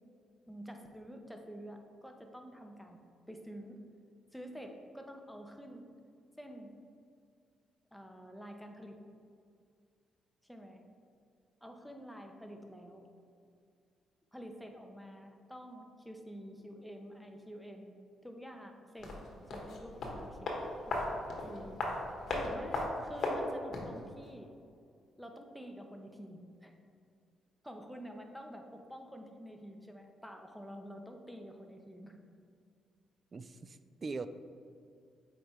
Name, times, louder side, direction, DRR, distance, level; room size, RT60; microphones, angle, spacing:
voice 1, 0.5-3.8 4.3-5.9 6.4-6.7 7.9-9.0 10.4-10.8 11.6-13.0 14.3-19.1 19.5-20.5 20.9-21.1 21.4-24.5 25.2-26.7 27.6-32.2, equal, ahead, 3 dB, 0.8 m, -48 dB
sound 1, 19.0-24.0 24.2-24.3, left 2 dB, 55° left, 1.4 m, -37 dB
voice 2, 33.3-34.3, right 4 dB, 35° right, 12 dB, 0.3 m, -41 dB
7.8 x 5.0 x 3.2 m, 2.4 s
cardioid pair, 90°, 0 cm